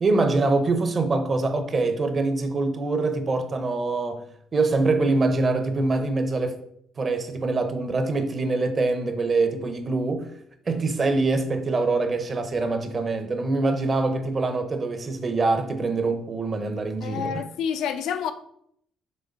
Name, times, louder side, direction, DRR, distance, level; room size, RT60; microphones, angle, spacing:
voice 1, 0.0-4.2 4.5-6.5 7.0-10.3 10.7-17.3, right 3 dB, 25° right, 0.8 m, -24 dB
voice 2, 17.0-18.3, left 8 dB, 75° left, 0.6 m, -28 dB
6.4 x 4.8 x 5.3 m
cardioid pair, 160°, 0 cm